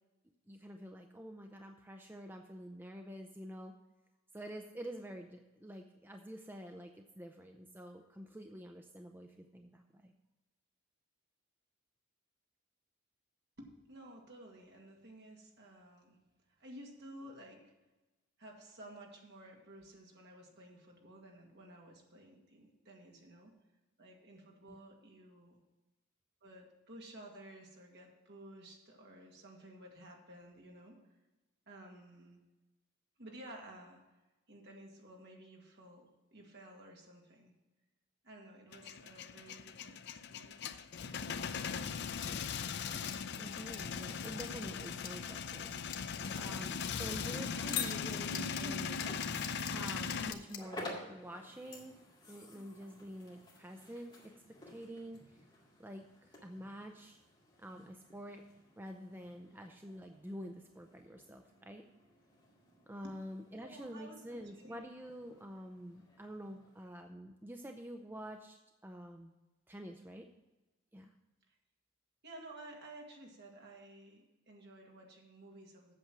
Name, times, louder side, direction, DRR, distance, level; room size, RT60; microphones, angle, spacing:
voice 1, 0.5-3.8 4.3-10.1 24.6-24.8 43.4-45.7 46.3-49.0 49.7-52.0 52.3-55.4 55.8-57.2 57.6-58.5 58.8-61.8 62.9-69.3 69.7-70.3 70.9-71.1, equal, 10° right, 4 dB, 0.5 m, -48 dB
voice 2, 13.6-16.2 16.6-17.7 18.4-23.5 24.0-25.6 26.4-31.0 31.7-32.4 33.2-34.2 34.5-37.5 38.2-40.9 42.9-43.0 47.5-47.8 48.3-48.8 52.5-52.6 63.0-63.1 63.5-64.9 71.5-71.6 72.2-75.9, right 1 dB, 50° right, 0 dB, 2.0 m, -53 dB
Male speech man speaking / Vehicle / Engine starting, 38.7-50.3, left 6 dB, 50° left, 0.4 m, -39 dB
sound 1, 42.2-50.6, left 9 dB, 70° left, 1.1 m, -43 dB
sound 2, 47.7-66.9, left 1 dB, 20° left, 2.2 m, -54 dB
8.3 x 7.0 x 6.0 m, 1.1 s
head